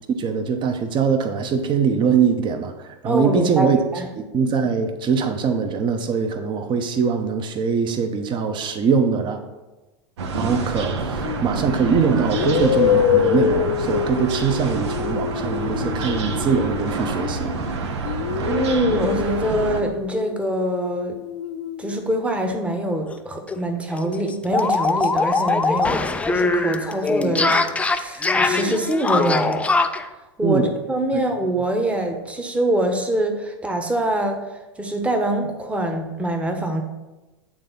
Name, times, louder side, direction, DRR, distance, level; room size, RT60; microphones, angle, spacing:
voice 1, 0.2-3.8 4.2-9.4 10.4-17.6 30.4-30.7 31.1-31.2, right 6 dB, 30° right, 7 dB, 1.0 m, -22 dB
voice 2, 3.0-4.1 18.4-21.2 21.8-29.9 30.4-34.4 34.8-36.8, right 1 dB, 10° right, 4 dB, 1.1 m, -24 dB
sound 1, 10.2-19.8, right 3 dB, 70° right, 1.0 m, -28 dB
sound 2, 11.2-11.5 12.3-17.6 18.0-22.0, left 9 dB, 65° left, 0.6 m, -25 dB
sound 3, 23.1-23.2 23.5-23.6 23.9-30.1, left 3 dB, 10° left, 0.4 m, -21 dB
8.9 x 3.8 x 5.5 m, 1.1 s
hypercardioid pair, 100°, 15 cm